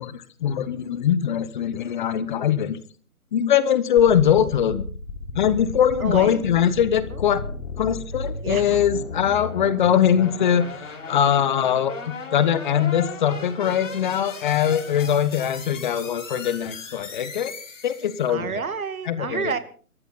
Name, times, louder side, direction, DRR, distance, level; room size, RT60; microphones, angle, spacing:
voice 1, 0.0-2.8 3.3-4.8 5.3-7.4 7.8-17.5 17.8-18.6 19.0-19.5, left 9 dB, 35° left, 14 dB, 1.2 m, -22 dB
sound 1, 4.0-18.3, left 4 dB, 55° left, 6.2 m, -36 dB
voice 2, 6.0-6.5 8.4-8.8 18.3-19.6, right 5 dB, 70° right, 11 dB, 2.2 m, -29 dB
24.5 x 14.0 x 4.2 m, 0.42 s
figure-of-eight pair, 140°, 44 cm